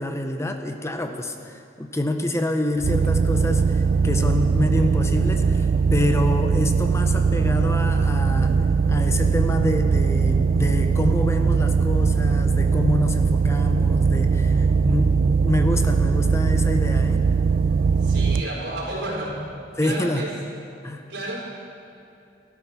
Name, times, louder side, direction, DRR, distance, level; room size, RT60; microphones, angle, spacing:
voice 1, 0.0-8.6 8.9-17.2 18.9-19.0 19.8-20.2 20.8-21.0, left 1 dB, 15° left, 5 dB, 0.7 m, -27 dB
sound 1, 2.8-18.4, right 5 dB, 50° right, 0.3 m, -20 dB
voice 2, 18.0-19.4 19.8-20.3 21.1-21.4, right 1 dB, 85° right, -5 dB, 4.5 m, -31 dB
13.5 x 13.0 x 5.9 m, 2.6 s
head